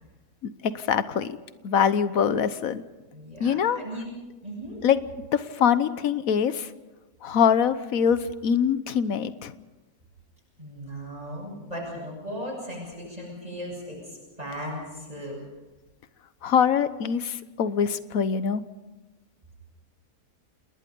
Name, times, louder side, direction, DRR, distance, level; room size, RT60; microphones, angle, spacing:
voice 1, 0.7-1.4 1.6-2.8 3.4-3.8 4.8-5.0 5.3-6.7 7.2-9.5 16.4-18.6, left 7 dB, 65° left, 13 dB, 1.4 m, -23 dB
voice 2, 3.1-4.8 10.6-15.4, equal, 25° right, -4 dB, 7.8 m, -37 dB
28.5 x 20.0 x 5.4 m, 1.1 s
omnidirectional pair, 1.7 m